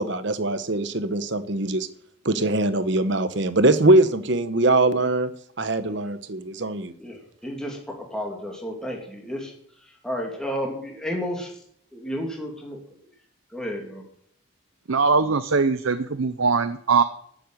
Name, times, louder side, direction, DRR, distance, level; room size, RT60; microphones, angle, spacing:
voice 1, 0.0-1.9 2.2-5.3 5.6-6.9, right 2 dB, 60° right, 12 dB, 1.0 m, -22 dB
voice 2, 7.0-9.5 9.8-11.6 11.9-12.8 13.5-14.0, equal, 5° left, 0 dB, 2.7 m, -32 dB
voice 3, 14.9-17.0, right 4 dB, 80° right, 11 dB, 0.7 m, -21 dB
11.5 x 7.8 x 9.2 m, 0.65 s
head